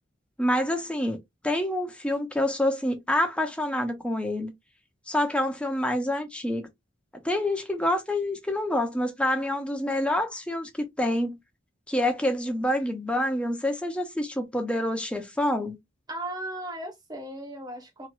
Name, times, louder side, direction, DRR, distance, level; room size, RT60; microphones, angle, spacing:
voice 1, 0.4-1.2 1.4-4.5 5.1-6.7 7.2-10.7 11.0-11.4 11.9-15.8, left 1 dB, 5° left, 0.6 m, -27 dB
voice 2, 16.1-18.1, right 1 dB, 20° right, 1.1 m, -36 dB
3.0 x 2.5 x 2.4 m
head